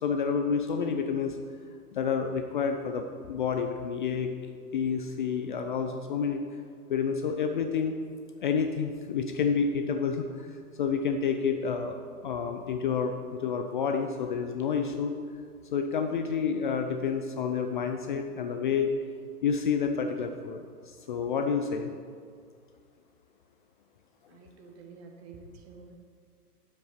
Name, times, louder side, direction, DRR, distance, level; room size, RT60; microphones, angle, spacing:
voice 1, 0.0-1.4 1.9-4.3 4.7-6.4 6.9-8.0 8.4-12.0 12.2-15.1 15.7-18.9 19.4-21.9, left 6 dB, 35° left, 5 dB, 0.5 m, -29 dB
voice 2, 24.3-26.0, right 4 dB, 40° right, 3 dB, 1.5 m, -49 dB
9.2 x 7.2 x 4.4 m, 2.1 s
figure-of-eight pair, 105°, 47 cm